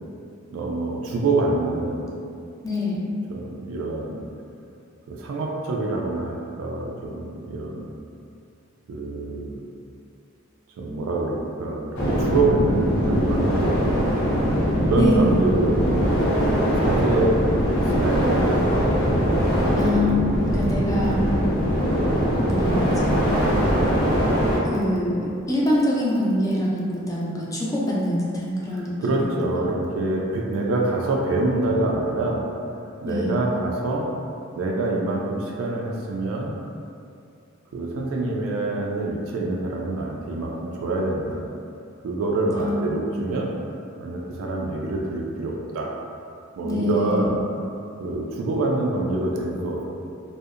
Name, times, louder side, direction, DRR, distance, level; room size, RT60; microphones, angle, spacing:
voice 1, 0.5-2.1 3.3-4.2 5.1-8.0 8.9-9.6 10.8-13.7 14.3-17.4 17.9-18.9 28.7-32.4 33.0-34.1 34.6-36.6 37.7-41.5 42.0-43.5 44.0-45.9 46.6-47.4 48.0-49.9, right 2 dB, 75° right, -2 dB, 0.3 m, -26 dB
voice 2, 2.6-3.0 14.9-15.3 19.8-20.2 20.4-21.2 22.4-23.2 24.6-29.9 33.0-33.3 42.5-42.8 46.6-47.3, left 1 dB, 15° left, -6 dB, 0.4 m, -25 dB
sound 1, 11.9-24.6, equal, 85° left, 0.6 m, -21 dB
2.7 x 2.0 x 2.4 m, 2.5 s
head